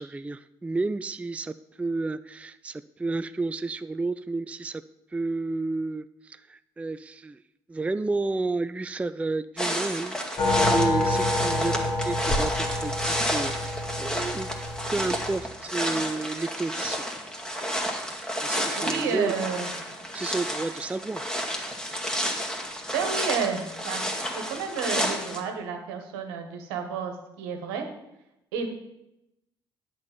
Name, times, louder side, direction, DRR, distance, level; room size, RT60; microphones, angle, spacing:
voice 1, 0.0-4.8 5.1-7.4 7.7-14.5 14.9-17.0 18.4-19.3 20.1-21.3, right 3 dB, 10° right, 13 dB, 0.4 m, -31 dB
sound 1, 9.6-25.4, equal, 5° left, 2.1 m, -31 dB
sound 2, 10.4-15.4, left 1 dB, 45° left, 2.2 m, -27 dB
voice 2, 18.8-19.7 22.9-24.0 24.5-27.8 28.5-28.7, right 6 dB, 70° right, 5 dB, 1.5 m, -30 dB
10.5 x 4.6 x 7.2 m, 0.87 s
figure-of-eight pair, 50°, 13 cm